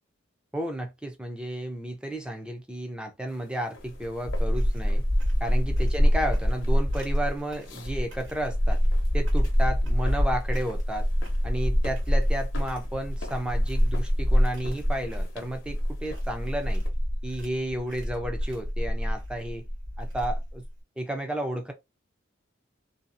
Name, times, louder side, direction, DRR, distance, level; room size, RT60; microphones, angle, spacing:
voice 1, 0.5-5.0 5.4-8.8 9.1-11.1 11.4-16.8 17.2-19.7 20.0-20.6 21.0-21.7, right 1 dB, 5° right, 0.5 m, -32 dB
sound 1, 3.3-16.9, left 3 dB, 75° left, 0.7 m, -50 dB
sound 2, 3.8-20.6, equal, 80° right, 1.4 m, -25 dB
2.7 x 2.4 x 2.5 m
head